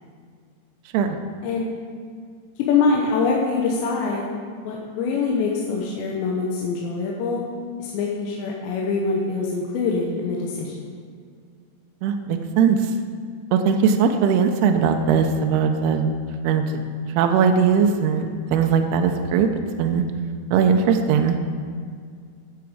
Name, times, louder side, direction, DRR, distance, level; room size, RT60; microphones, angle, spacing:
voice 1, 2.6-4.2 4.7-7.4 7.8-10.9, left 4 dB, 90° left, -2 dB, 3.1 m, -24 dB
voice 2, 12.0-12.9 13.5-16.1 16.4-16.8 17.2-19.5 19.8-20.0 20.5-21.4, right 6 dB, 85° right, 5 dB, 2.4 m, -19 dB
13.0 x 7.1 x 4.8 m, 2.1 s
omnidirectional pair, 5.1 m